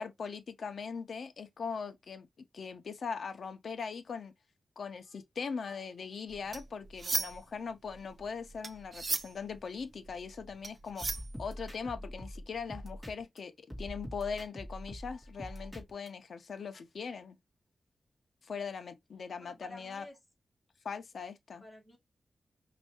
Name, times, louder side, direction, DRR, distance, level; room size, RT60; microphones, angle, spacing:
voice 1, 0.0-2.3 2.5-4.3 4.8-11.1 11.4-13.5 13.8-17.4 18.4-20.0 20.8-21.6, left 5 dB, 60° left, 0.9 m, -40 dB
sound 1, 6.3-7.6 7.9-11.9, right 3 dB, 35° right, 0.5 m, -37 dB
sound 2, 11.0-13.4 13.7-16.1, equal, 5° right, 2.3 m, -44 dB
voice 2, 19.4-20.2 21.6-22.0, left 1 dB, 15° left, 2.3 m, -51 dB
5.5 x 3.0 x 3.0 m
wide cardioid pair, 180°, 0 cm